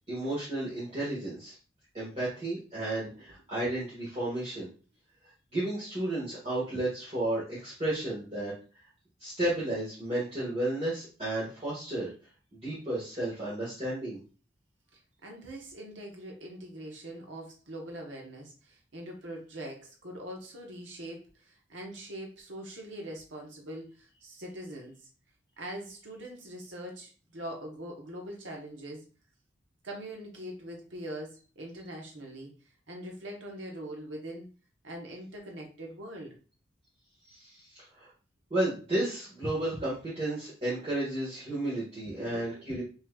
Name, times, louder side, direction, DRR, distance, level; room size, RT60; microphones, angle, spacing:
voice 1, 0.1-1.5 1.9-4.7 5.5-8.5 9.2-12.1 12.5-14.2 37.3-38.1 38.5-42.8, right 1 dB, 30° right, -9 dB, 1.7 m, -32 dB
voice 2, 14.9-25.1 25.6-29.0 29.8-32.6 32.9-34.5 34.8-36.4 42.2-42.8, right 1 dB, 75° right, 0 dB, 1.1 m, -42 dB
6.0 x 3.1 x 2.4 m, 0.36 s
head